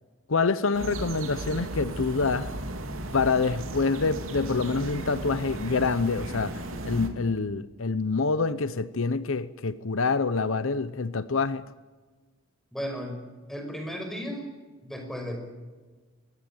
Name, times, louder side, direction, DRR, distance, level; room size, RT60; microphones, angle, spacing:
voice 1, 0.3-2.5 3.1-11.6, left 4 dB, 75° left, 15 dB, 0.8 m, -26 dB
sound 1, 0.7-7.1, right 1 dB, 75° right, 3.1 m, -35 dB
voice 2, 12.7-13.2 13.5-14.5 14.8-15.4, equal, ahead, 4 dB, 5.7 m, -34 dB
25.0 x 19.0 x 9.0 m, 1.3 s
head